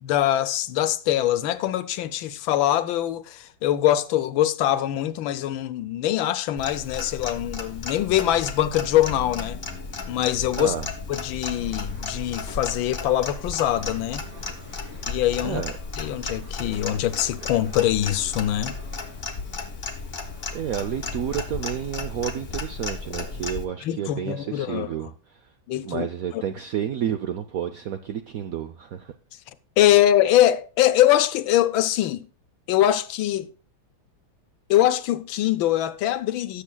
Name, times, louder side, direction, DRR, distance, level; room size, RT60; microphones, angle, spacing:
voice 1, 0.0-9.6 10.1-10.7 11.1-14.2 15.1-15.6 16.0-18.7 23.8-24.9 25.7-26.4 29.8-32.3 32.7-33.5 34.7-36.6, left 12 dB, 80° left, 1.4 m, -23 dB
Clock, 6.6-23.7, left 4 dB, 35° left, 1.2 m, -34 dB
sound 1, 11.1-22.8, right 1 dB, 50° right, 2.5 m, -49 dB
voice 2, 20.5-25.4 25.8-29.1, right 9 dB, 75° right, 0.8 m, -30 dB
17.0 x 7.2 x 2.2 m
omnidirectional pair, 2.2 m